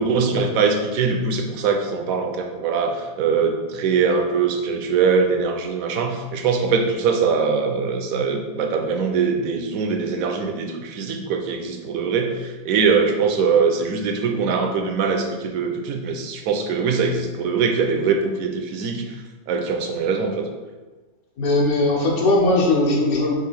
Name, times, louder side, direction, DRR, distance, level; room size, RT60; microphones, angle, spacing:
voice 1, 0.0-19.0 19.5-20.5, right 5 dB, 80° right, 4 dB, 1.0 m, -22 dB
voice 2, 21.4-23.4, left 2 dB, 80° left, -3 dB, 1.3 m, -19 dB
4.8 x 2.4 x 4.0 m, 1.3 s
omnidirectional pair, 1.5 m